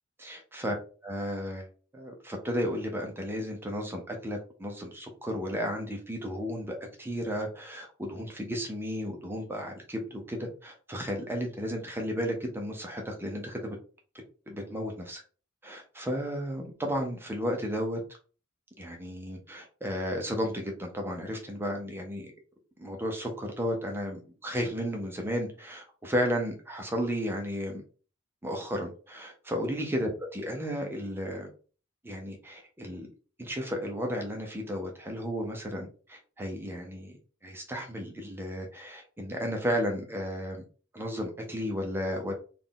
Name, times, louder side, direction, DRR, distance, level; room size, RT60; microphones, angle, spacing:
voice 1, 0.2-0.7 1.0-1.7 1.9-13.8 14.5-15.2 15.6-18.0 18.8-22.3 22.8-27.8 28.4-31.5 32.0-33.1 33.4-37.1 37.4-40.6 40.9-42.3, equal, 10° right, 2 dB, 0.6 m, -33 dB
3.7 x 2.4 x 3.8 m, 0.38 s
head